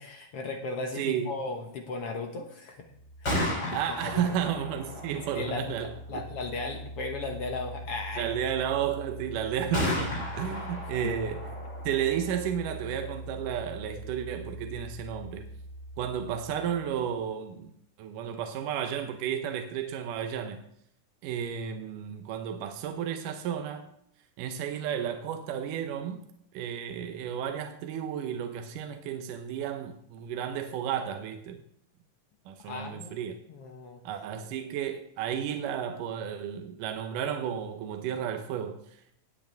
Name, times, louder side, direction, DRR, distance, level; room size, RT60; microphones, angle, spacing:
voice 1, 0.0-2.8 3.2-3.5 4.1-4.2 5.4-8.3 10.4-10.6 11.0-11.1 32.6-34.0, left 3 dB, 60° left, 1.6 m, -36 dB
voice 2, 1.0-1.3 3.7-6.2 8.2-11.4 11.9-15.5 16.0-17.7 18.0-20.6 21.2-23.9 24.4-26.2 26.5-31.6 32.5-33.4 34.0-38.8, right 9 dB, 75° right, 2.3 m, -32 dB
Gunshot gunfire, 3.0-16.8, equal, 35° left, 3.7 m, -37 dB
18.5 x 7.9 x 3.5 m
omnidirectional pair, 3.9 m